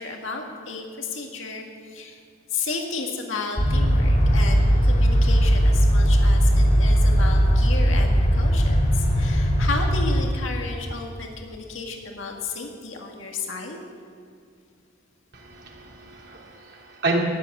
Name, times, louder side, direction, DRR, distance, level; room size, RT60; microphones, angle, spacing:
voice 1, 0.0-2.2 2.5-13.8, left 4 dB, 80° left, 2 dB, 1.8 m, -33 dB
sound 1, 3.6-10.2, equal, 45° left, 2.9 m, -18 dB
voice 2, 15.3-17.2, right 2 dB, 60° right, -2 dB, 3.0 m, -29 dB
15.0 x 8.0 x 9.8 m, 2.3 s
head